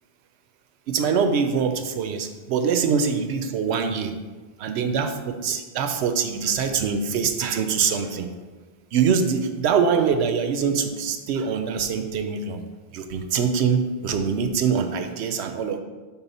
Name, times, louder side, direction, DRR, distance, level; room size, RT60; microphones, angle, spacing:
voice 1, 0.9-4.2 4.6-8.3 8.9-12.6 12.9-15.8, right 6 dB, 90° right, 7 dB, 0.9 m, -24 dB
5.5 x 4.2 x 4.1 m, 1.3 s
omnidirectional pair, 1.1 m